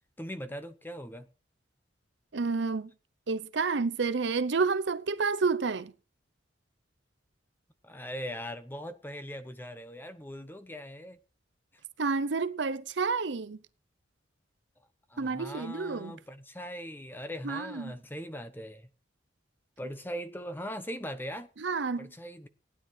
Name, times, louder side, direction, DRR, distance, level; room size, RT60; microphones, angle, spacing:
voice 1, 0.2-1.3 7.8-11.2 11.7-11.8 15.1-18.9 19.8-21.5 22.0-22.5, equal, 10° left, 0.9 m, -40 dB
voice 2, 2.3-2.9 3.3-5.9 12.0-13.6 15.2-16.2 17.4-17.9 21.6-22.1, right 4 dB, 65° right, 0.7 m, -29 dB
15.5 x 9.8 x 4.7 m
head